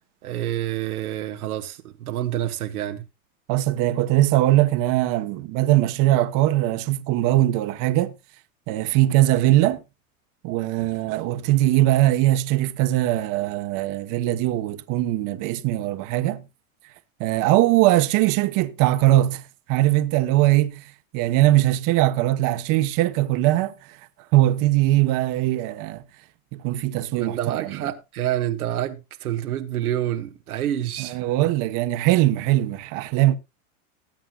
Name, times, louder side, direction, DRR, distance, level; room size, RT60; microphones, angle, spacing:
voice 1, 0.2-3.1 27.1-31.5, right 12 dB, 90° right, 1.4 m, -28 dB
voice 2, 3.5-8.1 8.7-9.8 10.4-16.4 17.2-19.4 19.7-20.8 21.1-23.7 24.3-26.0 26.5-27.8 31.0-33.4, right 15 dB, 45° right, 1.2 m, -21 dB
19.5 x 7.7 x 2.3 m
supercardioid pair, 120°, 43 cm